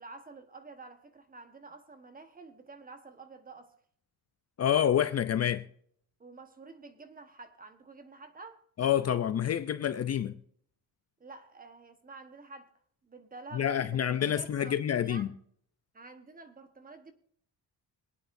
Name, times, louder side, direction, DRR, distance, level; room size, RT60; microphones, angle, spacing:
voice 1, 0.0-3.7 6.2-8.6 11.2-12.7 13.0-15.3 15.9-17.1, right 3 dB, 20° right, 1.3 m, -49 dB
voice 2, 4.6-5.6 8.8-10.4 13.5-15.3, left 9 dB, 40° left, 0.5 m, -28 dB
26.0 x 9.1 x 2.7 m
cardioid pair, 165°, 40 cm